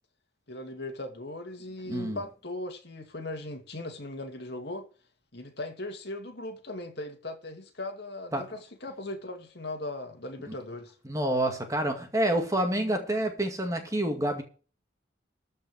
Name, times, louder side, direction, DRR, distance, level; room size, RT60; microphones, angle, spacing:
voice 1, 0.5-4.8 5.3-10.9, left 2 dB, 55° left, 2.6 m, -38 dB
voice 2, 1.9-2.2 8.3-8.5 11.1-14.4, right 1 dB, 15° right, 2.1 m, -28 dB
14.0 x 5.3 x 7.8 m
head